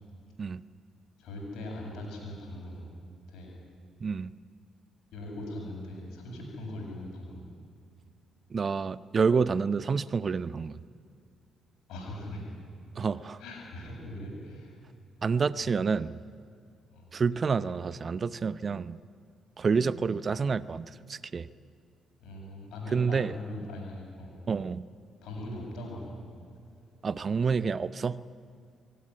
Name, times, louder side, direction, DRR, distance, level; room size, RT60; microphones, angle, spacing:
voice 1, 1.2-2.8 3.3-3.5 5.1-7.5 11.9-12.4 13.4-14.8 15.6-15.7 16.9-17.1 22.2-24.3 25.2-26.2, left 1 dB, 60° left, -1 dB, 7.7 m, -40 dB
voice 2, 8.5-10.8 13.0-13.4 15.2-16.2 17.1-19.0 19.6-21.5 22.9-23.3 24.5-24.8 27.0-28.2, right 5 dB, 40° right, 18 dB, 0.6 m, -28 dB
23.5 x 18.0 x 9.9 m, 2.3 s
figure-of-eight pair, 45°, 0 cm